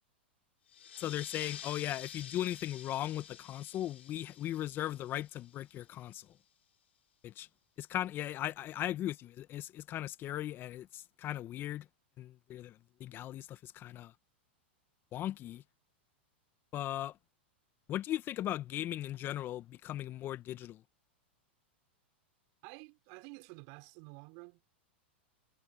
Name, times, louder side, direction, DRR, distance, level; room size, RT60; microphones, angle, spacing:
sound 1, 0.7-5.9, left 9 dB, 80° left, 4.2 m, -49 dB
voice 1, 1.0-6.4 7.2-7.5 7.8-11.9 12.2-14.1 15.1-15.6 16.7-17.2 17.9-20.8, left 13 dB, 35° left, 1.6 m, -38 dB
voice 2, 22.6-24.6, right 34 dB, 50° right, 6.4 m, -51 dB
hypercardioid pair, 105°, 6 cm